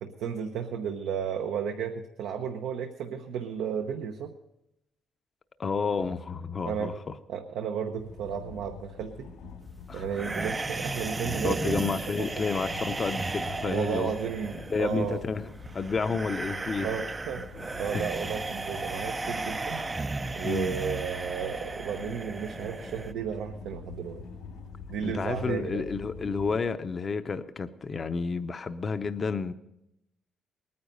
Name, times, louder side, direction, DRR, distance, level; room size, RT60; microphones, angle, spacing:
voice 1, 0.0-4.3 6.7-7.0 7.3-9.3 9.9-11.8 12.2-12.4 13.6-15.2 16.8-19.8 20.3-24.2 24.9-25.8, right 7 dB, 85° right, 5 dB, 0.8 m, -33 dB
voice 2, 5.6-7.2 9.9-10.1 11.4-14.1 14.7-15.4 15.7-16.9 17.9-18.0 20.4-20.8 25.0-29.5, left 5 dB, 40° left, 9 dB, 0.7 m, -30 dB
sound 1, 8.0-26.6, left 4 dB, 85° left, 2.9 m, -46 dB
sound 2, 10.1-23.1, right 3 dB, 25° right, 0.4 m, -35 dB
19.5 x 9.6 x 5.4 m, 0.85 s
cardioid pair, 90°, 0 cm